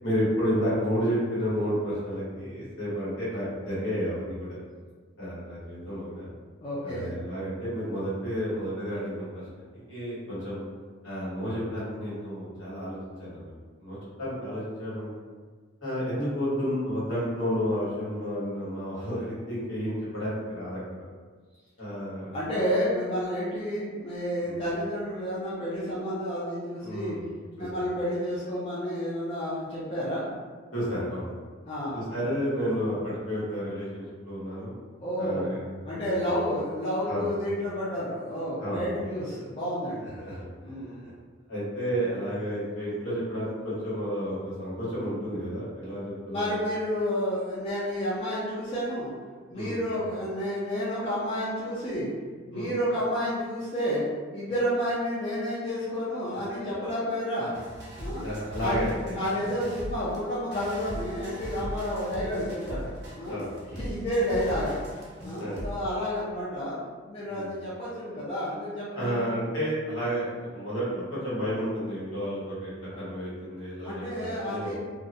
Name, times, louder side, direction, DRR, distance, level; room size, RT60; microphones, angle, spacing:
voice 1, 0.0-4.6 5.2-6.3 6.8-9.3 9.5-10.6 11.0-13.5 13.8-15.1 15.8-20.8 21.8-22.4 24.4-24.5 26.8-27.2 27.7-27.8 30.7-31.3 31.9-34.7 35.2-36.0 37.1-37.3 38.6-38.8 40.0-40.4 41.0-41.1 41.5-46.6 49.5-49.7 52.5-52.7 58.2-59.2 63.3-63.5 65.4-65.6 67.3-67.5 68.9-72.7 73.0-74.7, equal, 70° left, -9 dB, 1.2 m, -31 dB
voice 2, 6.6-7.1 22.3-27.2 27.6-30.2 31.7-32.0 35.0-35.5 35.9-40.1 40.6-41.0 46.3-49.1 49.5-52.1 52.4-54.1 54.3-57.5 58.0-58.2 58.6-58.8 59.1-62.9 63.2-63.4 63.7-64.9 65.2-66.8 67.1-69.4 73.8-74.7, equal, 30° left, -9 dB, 0.4 m, -30 dB
sound 1, 57.5-65.9, equal, 55° right, 0.7 m, -39 dB
2.3 x 2.0 x 2.6 m, 1.5 s
head